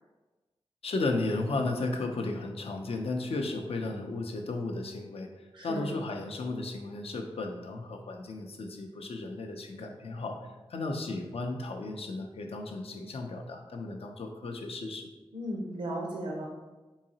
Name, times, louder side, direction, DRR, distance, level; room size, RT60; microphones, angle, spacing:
voice 1, 0.8-5.3 5.6-15.1, left 2 dB, 70° left, 3 dB, 0.4 m, -34 dB
voice 2, 5.5-5.9 15.3-16.5, right 1 dB, 80° right, -2 dB, 0.5 m, -35 dB
3.8 x 2.8 x 2.7 m, 1.2 s
cardioid pair, 45°, 10 cm